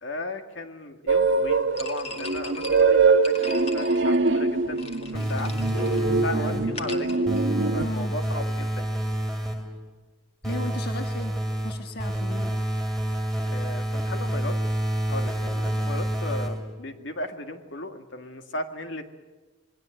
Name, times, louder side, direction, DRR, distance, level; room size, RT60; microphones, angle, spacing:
voice 1, 0.0-7.3 7.7-9.0 13.5-14.6 15.1-19.1, left 2 dB, 75° left, 6 dB, 2.1 m, -36 dB
sound 1, 1.1-7.9, right 4 dB, 80° right, 1.3 m, -23 dB
sound 2, 1.8-8.0, left 3 dB, 35° left, 2.2 m, -41 dB
sound 3, 5.1-6.8 7.3-9.8 10.4-16.8, right 1 dB, ahead, 2.4 m, -28 dB
voice 2, 6.3-6.7 7.8-8.1 10.4-11.3 11.6-12.5, left 1 dB, 55° left, 4 dB, 1.4 m, -35 dB
27.5 x 21.0 x 7.9 m, 1.3 s
head